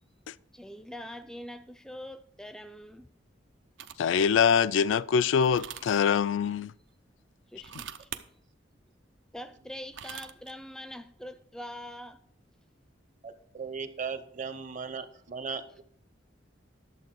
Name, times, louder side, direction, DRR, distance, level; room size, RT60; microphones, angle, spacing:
voice 1, 0.5-3.1 7.5-8.2 9.3-12.2, left 1 dB, 5° left, 0.4 m, -43 dB
sound 1, 3.8-4.2 5.4-6.0 7.5-8.2 9.7-10.5, right 9 dB, 80° right, 0.6 m, -42 dB
voice 2, 4.0-6.7, left 7 dB, 90° left, 0.3 m, -24 dB
voice 3, 13.2-15.8, right 5 dB, 40° right, 0.8 m, -37 dB
11.0 x 7.3 x 4.6 m
head